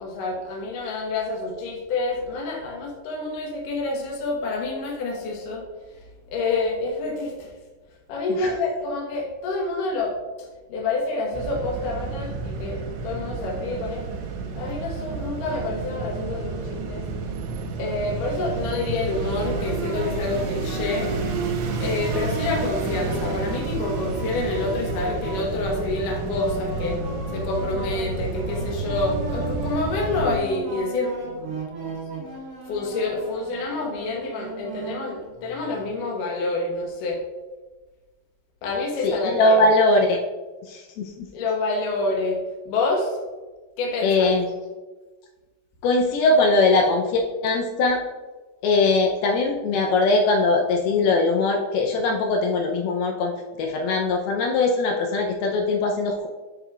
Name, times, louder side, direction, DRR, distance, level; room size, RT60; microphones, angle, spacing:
voice 1, 0.0-5.6 6.3-7.5 8.1-10.2 10.7-14.0 14.6-17.0 17.8-21.1 21.8-27.0 27.3-31.1 31.4-31.5 32.7-37.2 38.6-39.7 41.3-42.4 42.7-43.1 43.8-44.3, left 3 dB, 70° left, 0 dB, 2.2 m, -27 dB
sound 1, 11.3-30.4, right 4 dB, 80° right, 3.0 m, -30 dB
sound 2, 19.5-35.9, right 2 dB, 55° right, 2.0 m, -36 dB
voice 2, 39.0-40.2 40.7-41.3 44.0-44.6 45.8-48.0 48.6-53.3 53.6-56.3, left 3 dB, 85° left, 1 dB, 2.2 m, -21 dB
10.5 x 5.5 x 2.3 m, 1.3 s
omnidirectional pair, 5.1 m